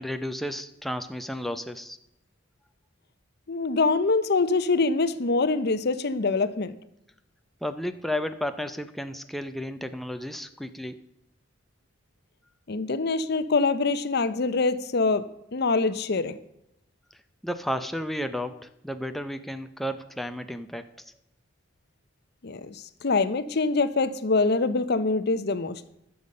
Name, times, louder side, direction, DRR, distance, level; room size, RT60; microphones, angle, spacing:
voice 1, 0.0-2.0 7.6-11.0 17.4-21.1, equal, ahead, 8 dB, 0.5 m, -33 dB
voice 2, 3.5-6.8 12.7-15.3 15.5-16.4 22.4-25.8, left 3 dB, 60° left, 14 dB, 0.7 m, -24 dB
12.5 x 7.0 x 6.5 m, 0.82 s
head